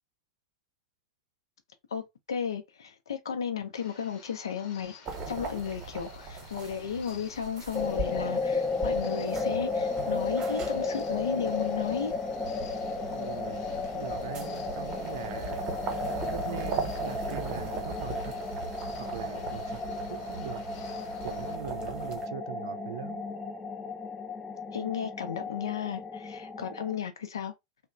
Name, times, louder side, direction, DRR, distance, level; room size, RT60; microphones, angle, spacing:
voice 1, 2.3-4.9 5.3-12.1 24.7-27.5, left 7 dB, 70° left, 0.5 m, -34 dB
sound 1, 3.7-21.6, left 5 dB, 40° left, 0.8 m, -52 dB
sound 2, 5.1-22.3, right 4 dB, 30° right, 0.9 m, -40 dB
sound 3, 7.7-27.0, left 3 dB, 10° left, 0.4 m, -34 dB
voice 2, 13.1-15.7 16.3-18.3 19.0-20.6 20.9-23.2, right 10 dB, 60° right, 0.4 m, -41 dB
2.9 x 2.1 x 2.4 m
figure-of-eight pair, 90°, 2 cm